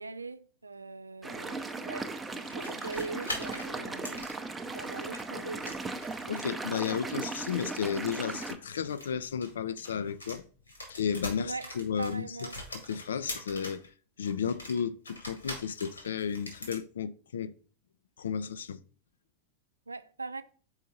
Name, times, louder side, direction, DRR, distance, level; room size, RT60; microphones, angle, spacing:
voice 1, 0.0-4.3 4.6-5.8 11.4-11.7 12.0-12.6 19.9-20.4, right 3 dB, 80° right, 0.4 m, -41 dB
sound 1, 1.2-8.6, right 3 dB, 10° right, 0.6 m, -37 dB
plastic toy foley, 2.4-5.2 5.6-6.3 7.4-10.4 10.7-13.9 14.2-16.8, left 1 dB, 80° left, 2.0 m, -43 dB
voice 2, 6.3-10.5 10.9-12.5 12.9-13.8 14.2-17.5 18.2-18.8, left 7 dB, 65° left, 0.4 m, -33 dB
5.6 x 4.5 x 3.9 m
figure-of-eight pair, 90°, 0 cm